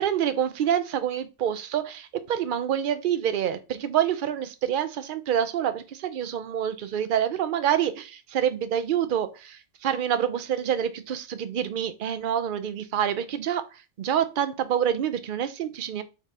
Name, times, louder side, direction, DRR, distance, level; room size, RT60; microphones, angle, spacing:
voice 1, 0.0-13.6 14.0-16.0, right 9 dB, 55° right, 0.7 m, -27 dB
3.9 x 2.7 x 4.7 m
omnidirectional pair, 1.2 m